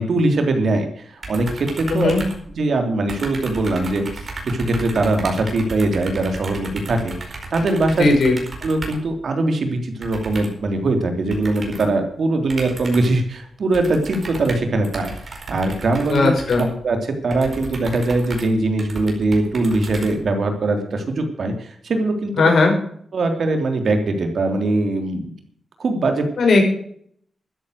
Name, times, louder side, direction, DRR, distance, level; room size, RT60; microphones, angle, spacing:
voice 1, 0.0-2.1 2.5-8.1 8.6-16.3 16.6-22.5 23.1-25.3 25.8-26.3, right 2 dB, 55° right, 5 dB, 3.3 m, -21 dB
sound 1, 1.2-2.8 3.1-9.1 10.0-10.7 11.3-12.0 12.5-13.2 13.7-20.6, right 3 dB, 40° right, 4.7 m, -34 dB
voice 2, 1.9-2.2 8.0-8.4 16.1-16.7 22.4-22.7 26.4-26.6, left 3 dB, 65° left, 1 dB, 6.0 m, -16 dB
13.0 x 11.0 x 6.5 m, 0.63 s
wide cardioid pair, 135°, 0 cm